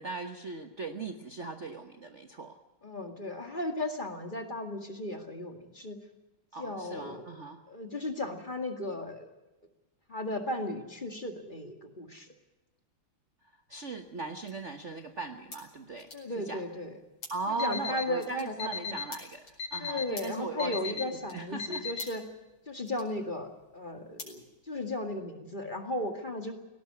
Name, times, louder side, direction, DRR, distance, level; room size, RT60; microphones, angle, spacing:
voice 1, 0.0-2.6 6.5-7.6 13.7-16.1 16.4-16.6 17.3-21.9, right 3 dB, 40° right, 7 dB, 1.2 m, -38 dB
voice 2, 2.8-6.0 6.6-7.3 7.7-9.3 10.1-12.3 16.1-17.0 17.5-19.0 19.8-22.2 22.7-26.5, left 2 dB, 25° left, 6 dB, 2.1 m, -36 dB
sound 1, 13.7-25.2, left 3 dB, 70° left, 5.6 m, -52 dB
Alarm, 17.6-18.0 18.6-19.0 19.6-20.0 20.6-21.0 21.6-22.0, left 5 dB, 85° left, 2.7 m, -35 dB
18.5 x 17.5 x 9.6 m, 1.0 s
omnidirectional pair, 2.3 m